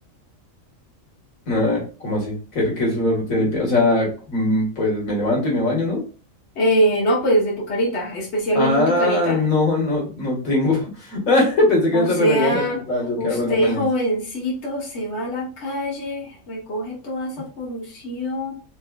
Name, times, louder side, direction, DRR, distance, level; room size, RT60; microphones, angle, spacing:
voice 1, 1.5-6.0 8.5-12.6 12.9-13.9, left 2 dB, 90° left, -1 dB, 2.2 m, -21 dB
voice 2, 6.5-9.4 11.9-12.8 13.2-18.5, equal, 55° left, -3 dB, 1.5 m, -23 dB
4.7 x 3.5 x 2.4 m, 0.38 s
omnidirectional pair, 1.4 m